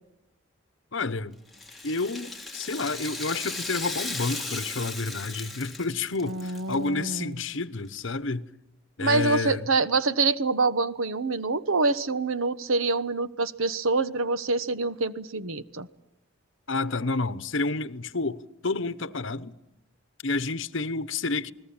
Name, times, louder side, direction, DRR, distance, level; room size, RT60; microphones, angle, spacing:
voice 1, 0.9-1.4 1.8-8.5 9.0-9.6 16.7-19.6 20.2-21.5, left 3 dB, 65° left, 1.0 m, -30 dB
Rattle (instrument), 1.5-6.7 7.1-7.2 8.0-8.1, left 3 dB, ahead, 2.1 m, -36 dB
voice 2, 6.2-7.4 9.0-15.9, right 3 dB, 75° right, 1.1 m, -26 dB
29.0 x 20.0 x 8.8 m
head